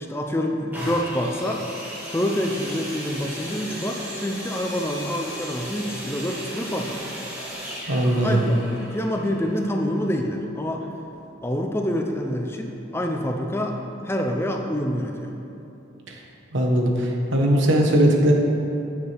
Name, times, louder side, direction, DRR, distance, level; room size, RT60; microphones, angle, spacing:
voice 1, 0.0-1.6 2.1-7.1 8.2-10.8 11.4-13.8 14.0-15.4, equal, 10° left, 2 dB, 0.5 m, -27 dB
sound 1, 0.7-10.4 11.1-11.2, equal, 10° right, 1.9 m, -36 dB
voice 2, 7.9-8.4 16.5-18.3, right 1 dB, 70° right, 1 dB, 1.3 m, -19 dB
15.5 x 7.1 x 3.5 m, 3.0 s
head